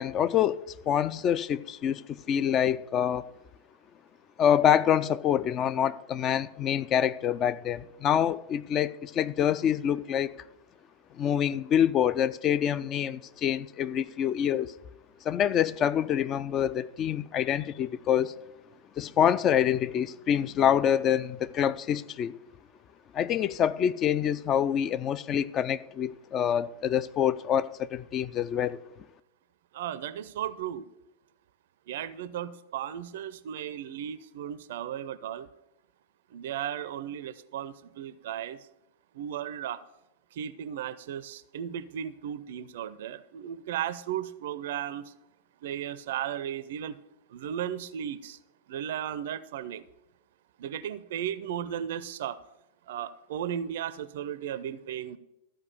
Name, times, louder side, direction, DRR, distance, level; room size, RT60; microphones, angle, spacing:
voice 1, 0.0-3.2 4.4-10.4 11.1-14.7 15.2-18.3 19.0-22.3 23.1-28.8, left 9 dB, 30° left, 0.4 m, -26 dB
voice 2, 29.7-30.9 31.9-35.5 36.3-38.6 39.1-39.8 40.3-45.1 45.6-47.0 47.3-48.4 48.7-49.9 50.6-52.4 52.9-55.2, right 10 dB, 55° right, 0.4 m, -35 dB
13.0 x 4.9 x 6.8 m
figure-of-eight pair, 90°, 0 cm